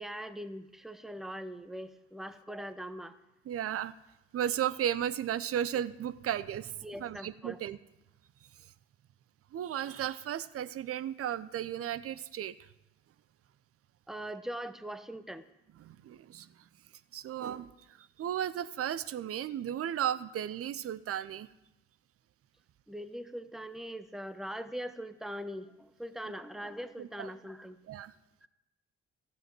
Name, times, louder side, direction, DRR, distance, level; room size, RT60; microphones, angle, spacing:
voice 1, 0.0-3.2 6.8-7.6 14.1-15.4 22.9-27.8 28.4-28.5, equal, ahead, 11 dB, 0.8 m, -41 dB
voice 2, 3.5-3.9 4.3-6.7 7.0-7.8 9.5-12.5 15.8-16.5 17.1-17.7 18.2-21.5 27.0-27.3 27.9-28.1, right 10 dB, 45° right, 15 dB, 0.6 m, -34 dB
14.5 x 7.8 x 4.6 m, 0.92 s
hypercardioid pair, 45°, 34 cm